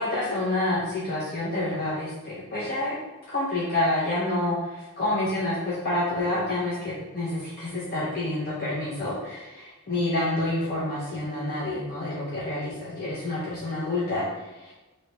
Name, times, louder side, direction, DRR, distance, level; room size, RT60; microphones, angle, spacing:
voice 1, 0.0-3.0 3.3-14.7, left 2 dB, 40° left, -8 dB, 0.6 m, -28 dB
3.2 x 2.8 x 2.9 m, 1.1 s
head